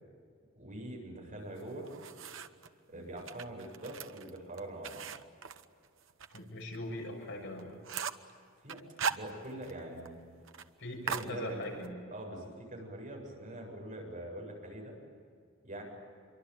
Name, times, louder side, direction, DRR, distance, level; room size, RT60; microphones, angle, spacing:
voice 1, 0.5-1.9 2.9-5.1 8.6-8.8 9.1-10.2 11.0-11.8 12.1-15.0 15.6-15.8, right 1 dB, 40° right, 0 dB, 8.0 m, -43 dB
sound 1, 1.6-2.7 3.2-6.4 6.7-6.8 7.2-7.3 7.6-8.3 8.7-9.8 10.1-10.2 10.5-10.7 11.1-11.9, right 6 dB, 70° right, 1.1 m, -39 dB
voice 2, 6.3-7.8 10.8-12.0, left 1 dB, 65° left, 1 dB, 7.0 m, -41 dB
26.5 x 24.0 x 9.4 m, 2.2 s
head